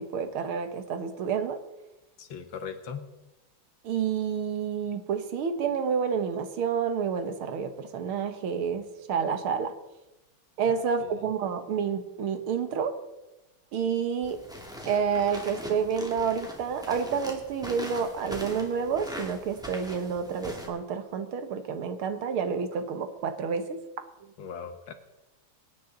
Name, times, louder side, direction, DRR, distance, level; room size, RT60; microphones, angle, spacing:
voice 1, 0.0-1.6 3.8-9.7 10.6-12.9 13.7-14.4 14.9-23.8, right 6 dB, 75° right, 9 dB, 2.0 m, -29 dB
voice 2, 2.2-3.1 10.7-10.8 11.0-11.3 24.4-24.9, left 6 dB, 65° left, 8 dB, 1.9 m, -39 dB
sound 1, 14.2-20.7, equal, ahead, 2.0 m, -41 dB
24.0 x 9.9 x 3.9 m, 1.0 s
omnidirectional pair, 2.3 m